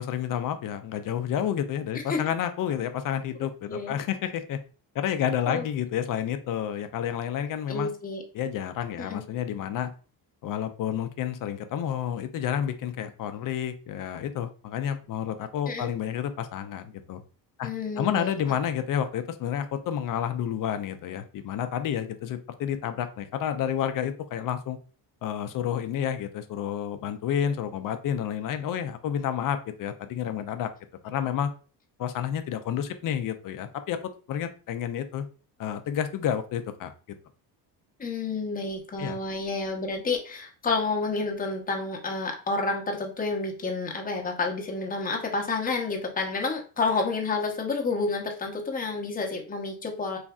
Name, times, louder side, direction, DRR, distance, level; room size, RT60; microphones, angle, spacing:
voice 1, 0.0-4.6 4.9-7.9 8.3-9.9 10.4-17.2 17.6-24.8 25.2-30.7 31.0-31.5 32.0-34.0 34.3-35.2 35.6-36.9 39.0-39.2, left 9 dB, 50° left, 9 dB, 0.5 m, -30 dB
voice 2, 7.7-8.2 9.0-9.2 15.7-15.9 17.6-18.4 38.0-50.2, left 3 dB, 20° left, 1 dB, 0.8 m, -29 dB
3.2 x 2.5 x 2.3 m, 0.37 s
cardioid pair, 95°, 43 cm